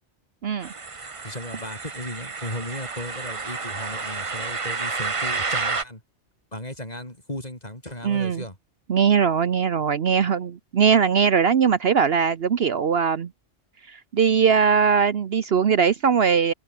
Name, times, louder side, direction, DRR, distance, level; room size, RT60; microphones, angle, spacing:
sound 1, 0.6-5.8, right 4 dB, 30° right, 1.0 m, -30 dB
voice 1, 1.2-6.0 6.5-8.6, left 1 dB, 35° left, 6.1 m, -36 dB
voice 2, 8.0-8.4 8.9-13.3 13.9-16.5, right 6 dB, 60° right, 1.1 m, -20 dB
omnidirectional pair, 1.2 m